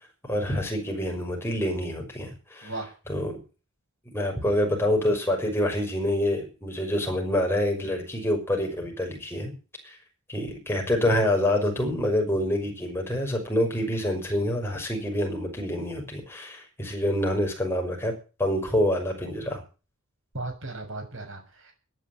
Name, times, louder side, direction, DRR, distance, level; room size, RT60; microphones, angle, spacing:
voice 1, 0.3-2.7 3.1-3.4 4.1-9.5 9.8-10.0 10.3-18.1 18.4-19.6, left 1 dB, 10° left, 1 dB, 5.9 m, -26 dB
voice 2, 20.3-21.7, right 2 dB, 60° right, 4 dB, 6.7 m, -36 dB
13.5 x 10.5 x 9.3 m, 0.34 s
head